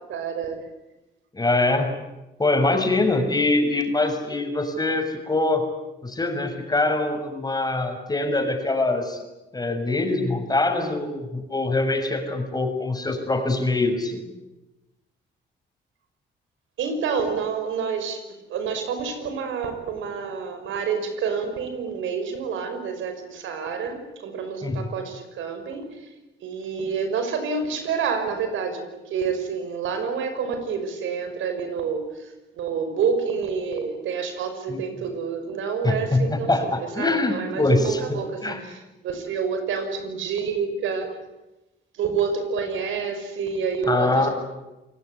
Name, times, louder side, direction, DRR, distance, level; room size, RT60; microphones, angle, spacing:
voice 1, 0.1-0.7 16.8-18.2 18.5-26.1 26.4-41.2 41.9-44.3, right 6 dB, 80° right, 7 dB, 5.8 m, -28 dB
voice 2, 1.3-2.0 2.4-5.7 6.0-9.2 9.5-14.2 24.6-24.9 34.7-34.8 35.8-38.0 38.4-38.6 43.9-44.3, left 2 dB, 20° left, 5 dB, 6.4 m, -23 dB
28.0 x 19.5 x 9.9 m, 1.0 s
cardioid pair, 90°, 20 cm